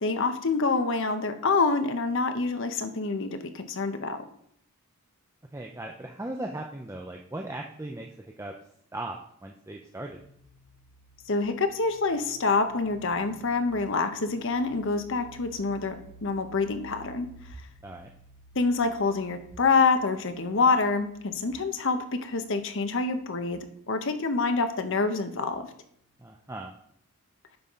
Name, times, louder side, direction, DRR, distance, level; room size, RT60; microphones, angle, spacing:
voice 1, 0.0-4.2 11.3-15.9 16.2-17.3 18.6-23.6 23.9-25.6, left 4 dB, 55° left, 8 dB, 0.8 m, -26 dB
voice 2, 5.5-8.5 8.9-10.2 17.8-18.1 26.2-26.7, right 1 dB, 10° right, 1 dB, 0.5 m, -38 dB
sound 1, 10.1-25.5, right 2 dB, 15° left, 1.9 m, -54 dB
9.7 x 3.7 x 5.5 m, 0.68 s
head